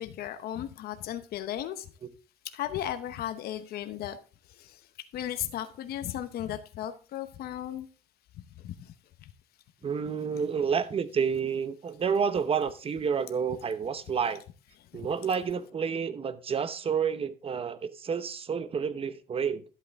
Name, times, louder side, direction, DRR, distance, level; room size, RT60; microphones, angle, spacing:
voice 1, 0.0-1.9 2.5-4.2 4.6-4.8 5.1-7.9, left 11 dB, 65° left, 0.9 m, -35 dB
voice 2, 9.8-14.4 14.9-19.6, right 6 dB, 35° right, 0.9 m, -29 dB
11.5 x 7.9 x 3.5 m
cardioid pair, 110°, 17 cm